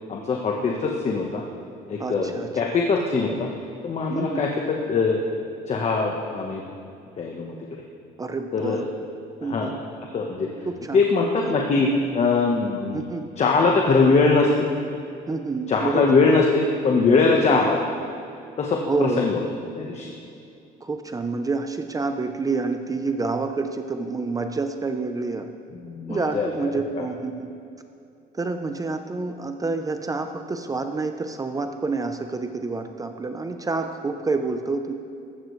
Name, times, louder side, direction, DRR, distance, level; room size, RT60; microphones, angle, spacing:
voice 1, 0.1-1.4 1.9-3.5 3.8-4.5 4.9-5.2 5.7-6.6 7.2-7.8 8.5-8.8 9.4-9.8 10.1-10.5 10.9-13.0 13.4-14.7 15.7-17.8 18.6-19.4 19.7-20.1 25.8-27.0, left 4 dB, 40° left, 0 dB, 1.2 m, -22 dB
voice 2, 2.0-2.8 4.1-4.4 8.2-8.9 9.4-9.7 10.7-11.0 11.4-11.5 12.9-13.3 15.3-16.4 17.5-17.6 18.9-19.3 20.8-25.5 26.1-27.5 28.3-34.9, right 3 dB, 20° right, 7 dB, 0.7 m, -28 dB
15.0 x 12.0 x 3.2 m, 2.6 s
cardioid pair, 110°, 17 cm